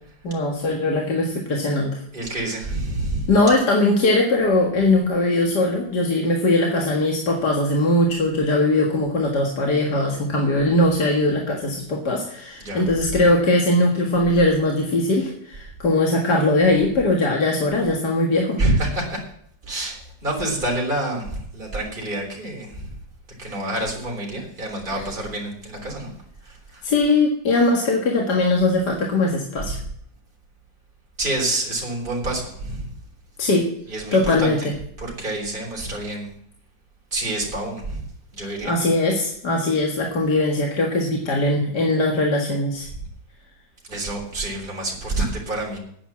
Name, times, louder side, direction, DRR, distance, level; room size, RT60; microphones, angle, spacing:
voice 1, 0.2-2.0 3.3-18.6 26.8-29.8 33.4-33.7 34.1-34.7 38.6-42.9, left 2 dB, 60° left, 0 dB, 2.3 m, -20 dB
voice 2, 2.1-3.3 12.6-12.8 18.6-19.2 19.6-22.9 23.4-26.1 26.4-26.8 29.6-29.7 31.2-32.9 33.9-34.7 35.0-36.3 37.1-38.0 38.3-38.7 43.9-45.8, right 2 dB, 25° right, -2 dB, 3.9 m, -27 dB
10.0 x 9.1 x 7.4 m, 0.66 s
omnidirectional pair, 2.1 m